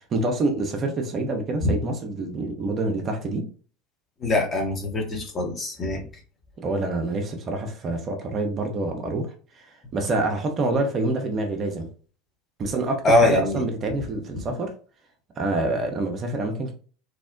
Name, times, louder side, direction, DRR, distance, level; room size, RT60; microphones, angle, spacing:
voice 1, 0.1-3.5 6.6-9.6 9.9-11.9 12.6-14.7 15.4-16.7, right 2 dB, 35° right, 0.5 m, -27 dB
voice 2, 4.2-6.0 13.0-13.6, left 2 dB, 30° left, 0.8 m, -22 dB
2.7 x 2.0 x 2.5 m
figure-of-eight pair, 75°, 0 cm